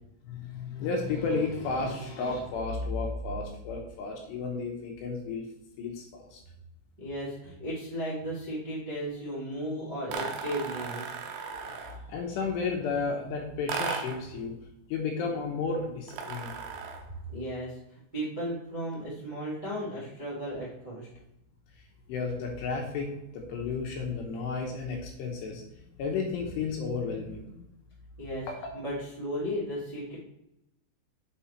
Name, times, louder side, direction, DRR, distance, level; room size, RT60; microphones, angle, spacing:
voice 1, 0.2-5.5 5.8-6.4 11.8-14.6 14.9-16.6 22.1-25.6 26.0-27.6 28.5-28.6, left 4 dB, 75° left, 1 dB, 2.7 m, -33 dB
voice 2, 7.0-11.1 17.3-21.1 28.2-28.5 28.7-30.1, equal, 50° right, -8 dB, 0.5 m, -35 dB
sound 1, 10.1-12.1 13.7-14.3 16.1-17.1, right 5 dB, 80° right, 2.5 m, -36 dB
7.1 x 4.8 x 4.3 m, 0.85 s
omnidirectional pair, 5.7 m